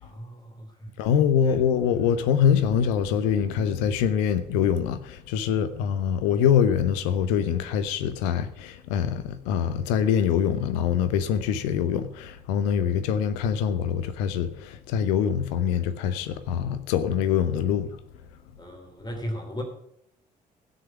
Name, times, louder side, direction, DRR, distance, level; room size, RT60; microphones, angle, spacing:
voice 1, 0.0-0.9 1.4-1.5 18.6-19.6, equal, 20° left, 3.1 m, -36 dB
voice 2, 1.0-17.9, left 8 dB, 65° left, 0.9 m, -24 dB
16.5 x 6.6 x 5.9 m
figure-of-eight pair, 45°, 21 cm